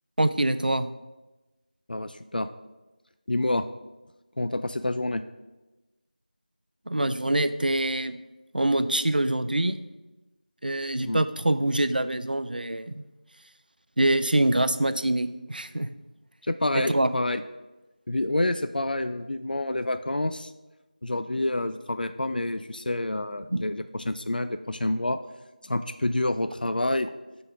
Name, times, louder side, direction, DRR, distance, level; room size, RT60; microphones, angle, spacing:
voice 1, 0.2-0.9 6.9-8.1 8.5-9.8 10.6-13.0 14.0-15.9 16.7-17.1 23.5-23.6, right 1 dB, 80° right, 12 dB, 0.4 m, -25 dB
voice 2, 1.9-2.5 3.3-3.6 4.4-5.2 11.0-11.2 16.5-17.4 18.1-20.5 21.0-25.2 25.6-27.1, left 1 dB, 80° left, 10 dB, 0.3 m, -28 dB
5.8 x 3.9 x 4.8 m, 1.1 s
figure-of-eight pair, 175°, 5 cm